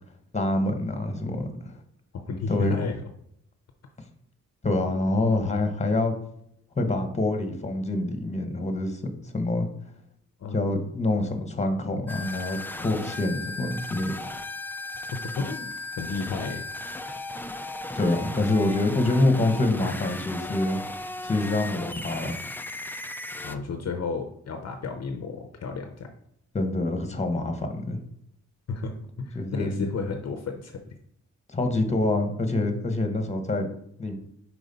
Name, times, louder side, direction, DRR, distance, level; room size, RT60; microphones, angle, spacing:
voice 1, 0.3-1.7 2.5-2.9 4.6-6.1 6.7-9.7 10.5-14.1 17.9-20.8 21.2-22.4 26.5-28.0 29.3-29.9 31.5-33.7 34.0-34.1, left 2 dB, 20° left, 6 dB, 1.1 m, -26 dB
voice 2, 2.1-3.0 10.4-10.8 15.3-16.6 23.4-26.1 28.7-28.9 29.2-30.8, left 4 dB, 60° left, 5 dB, 0.7 m, -33 dB
sound 1, 12.1-23.6, left 2 dB, 5° left, 0.3 m, -36 dB
5.0 x 4.8 x 4.0 m, 0.71 s
cardioid pair, 80°, 30 cm